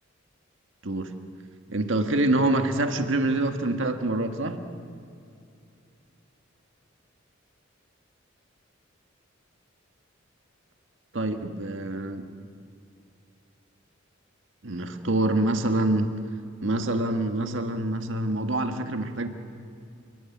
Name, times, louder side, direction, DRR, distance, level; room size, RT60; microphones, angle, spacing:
voice 1, 0.8-1.1 1.7-4.6 11.1-12.3 14.6-16.1 16.6-19.3, right 2 dB, 65° right, 6 dB, 1.7 m, -26 dB
29.0 x 18.5 x 8.6 m, 2.5 s
head